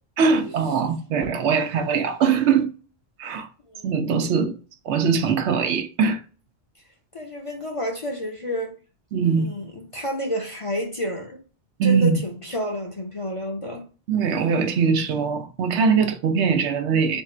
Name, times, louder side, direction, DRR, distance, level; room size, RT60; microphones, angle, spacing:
voice 1, 0.2-2.7 3.2-3.5 3.8-4.6 4.8-6.2 9.1-9.5 11.8-12.2 14.1-17.2, right 6 dB, 80° right, 0.9 m, -21 dB
voice 2, 3.7-4.0 7.1-8.8 9.4-11.4 11.8-13.8, left 1 dB, 35° left, 0.6 m, -30 dB
3.5 x 2.4 x 4.2 m
omnidirectional pair, 1.2 m